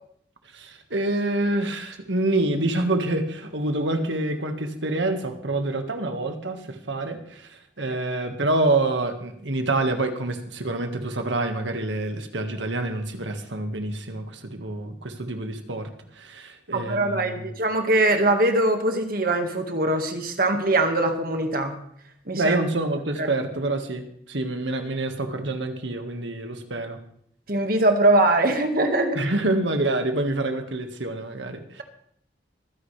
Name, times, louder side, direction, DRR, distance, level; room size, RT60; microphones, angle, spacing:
voice 1, 0.5-17.5 22.3-27.0 29.1-31.8, right 2 dB, 80° right, 6 dB, 1.7 m, -27 dB
voice 2, 16.7-21.8 22.3-22.6 23.2-23.3 27.5-29.2, right 2 dB, 50° right, 5 dB, 1.8 m, -22 dB
24.0 x 10.0 x 3.4 m, 0.67 s
head